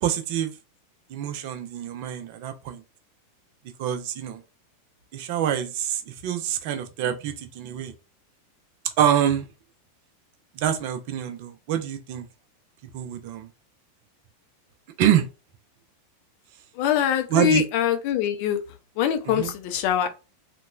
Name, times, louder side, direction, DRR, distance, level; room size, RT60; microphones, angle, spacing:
voice 1, 0.0-0.5 1.1-2.8 3.8-4.4 5.1-7.9 9.0-9.5 10.6-12.2 12.9-13.5 15.0-15.3 17.3-17.6 19.2-19.5, right 10 dB, 50° right, 0.5 m, -26 dB
voice 2, 16.8-18.6 19.0-20.1, left 10 dB, 50° left, 0.5 m, -23 dB
2.9 x 2.2 x 2.3 m
figure-of-eight pair, 90°, 0 cm